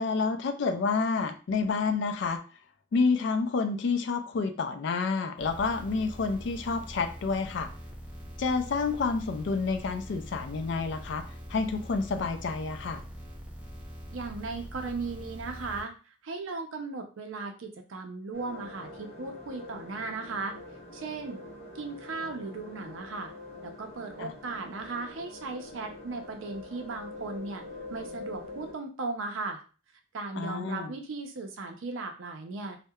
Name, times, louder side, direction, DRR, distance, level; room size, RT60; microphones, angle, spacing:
voice 1, 0.0-2.4 2.9-7.7 8.4-11.2 11.5-13.0 24.2-24.3 30.4-30.9, left 4 dB, 60° left, 8 dB, 0.3 m, -29 dB
sound 1, 5.4-15.8, equal, 5° right, 0.4 m, -43 dB
voice 2, 14.1-20.5 20.9-21.4 21.7-23.3 23.6-27.6 27.9-29.6 30.1-32.8, right 3 dB, 70° right, 5 dB, 0.5 m, -37 dB
sound 2, 18.3-28.7, left 2 dB, 30° left, 0.7 m, -45 dB
2.7 x 2.1 x 2.3 m, 0.37 s
head